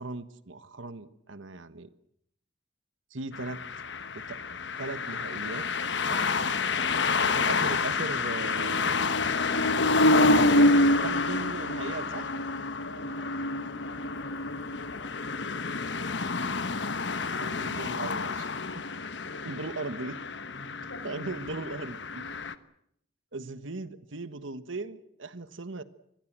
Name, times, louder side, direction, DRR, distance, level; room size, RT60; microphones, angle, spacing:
voice 1, 0.0-1.9 3.1-3.6 4.1-4.4 4.8-5.7 6.0-6.3 6.7-9.1 10.2-12.3 17.4-18.5 18.8-18.9 19.4-20.2 21.0-22.3 23.3-25.8, right 3 dB, 80° right, 12 dB, 1.4 m, -38 dB
sound 1, 3.3-22.5, left 2 dB, 65° left, 1.2 m, -28 dB
voice 2, 12.6-17.4 19.1-19.5 20.2-21.2 22.3-22.5, left 1 dB, 85° left, 6 dB, 7.4 m, -49 dB
26.5 x 21.5 x 7.6 m, 0.72 s
head